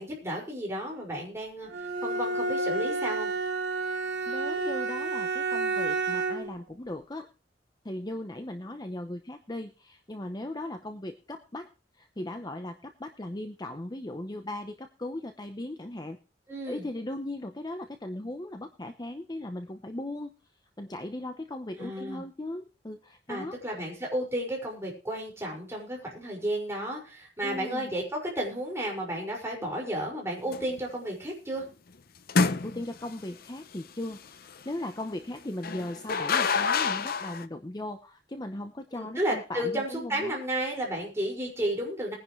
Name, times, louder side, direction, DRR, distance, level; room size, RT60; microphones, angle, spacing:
voice 1, 0.0-1.7 2.0-3.3 16.5-16.8 21.8-22.2 23.3-31.6 38.9-42.1, right 1 dB, 15° right, -2 dB, 5.7 m, -32 dB
Bowed string instrument, 1.7-6.6, right 3 dB, 75° right, 2.8 m, -30 dB
voice 2, 4.3-7.3 7.8-11.7 12.0-16.2 16.7-20.3 20.8-23.8 27.4-27.9 32.3-40.4, left 1 dB, 20° left, 6 dB, 0.8 m, -38 dB
sound 1, 30.5-30.8 32.3-33.1 35.6-37.4, left 5 dB, 55° left, 0.7 m, -27 dB
21.0 x 10.5 x 3.2 m, 0.33 s
head